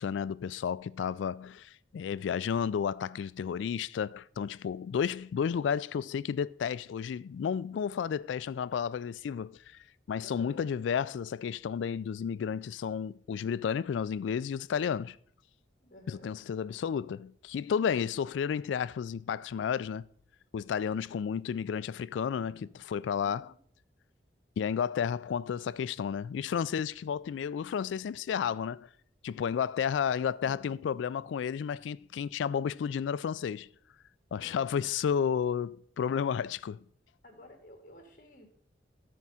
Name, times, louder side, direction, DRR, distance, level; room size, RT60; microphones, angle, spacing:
voice 1, 0.0-9.8 10.1-15.2 16.1-20.1 20.5-23.5 24.6-28.9 29.2-33.7 34.3-36.8, left 7 dB, 90° left, 0.3 m, -32 dB
voice 2, 10.2-10.6 15.8-16.3 22.3-22.7 23.2-23.6 30.4-30.8 34.4-34.8 37.2-38.5, left 1 dB, 45° left, 1.9 m, -52 dB
13.0 x 4.7 x 5.6 m
head